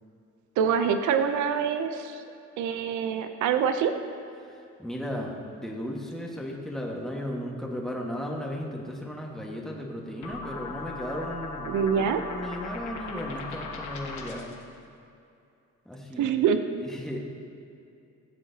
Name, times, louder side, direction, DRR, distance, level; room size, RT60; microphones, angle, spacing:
voice 1, 0.6-2.2 2.6-3.9 11.7-12.2 16.2-16.8, right 7 dB, 75° right, 8 dB, 0.6 m, -25 dB
voice 2, 4.4-14.5 15.8-16.3 16.8-17.2, equal, ahead, -2 dB, 1.5 m, -35 dB
sound 1, 10.2-14.6, left 3 dB, 70° left, 1.3 m, -38 dB
15.5 x 7.3 x 2.8 m, 2.6 s
cardioid pair, 90°, 30 cm